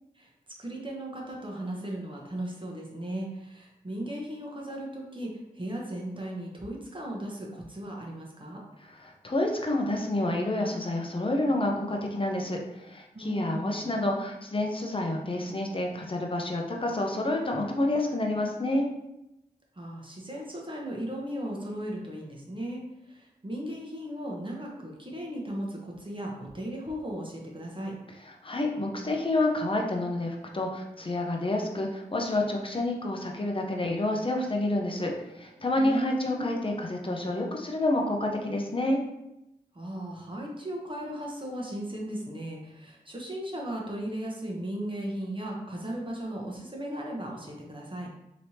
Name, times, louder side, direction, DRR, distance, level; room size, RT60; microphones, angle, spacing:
voice 1, 0.6-8.6 13.1-13.8 19.8-27.9 35.8-36.5 39.7-48.1, right 1 dB, 30° right, -2 dB, 0.9 m, -36 dB
voice 2, 8.9-18.9 28.4-39.0, left 1 dB, 35° left, 1 dB, 0.7 m, -29 dB
3.3 x 2.9 x 2.8 m, 0.88 s
cardioid pair, 40°, 16 cm